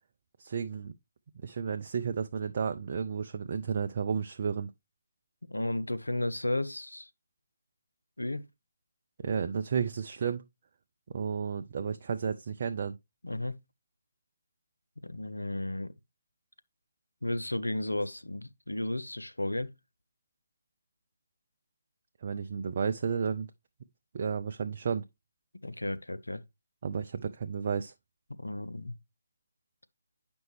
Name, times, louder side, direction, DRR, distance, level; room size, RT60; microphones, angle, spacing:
voice 1, 0.4-0.9 1.4-4.7 9.2-10.4 11.1-13.0 22.2-23.5 24.1-25.0 26.8-27.9, right 6 dB, 45° right, 0.5 m, -32 dB
voice 2, 5.5-7.1 8.2-8.5 13.2-13.5 15.0-15.9 17.2-19.7 25.6-26.4 28.4-29.0, left 1 dB, 85° left, 0.6 m, -33 dB
9.1 x 5.3 x 3.1 m
figure-of-eight pair, 145°, 0 cm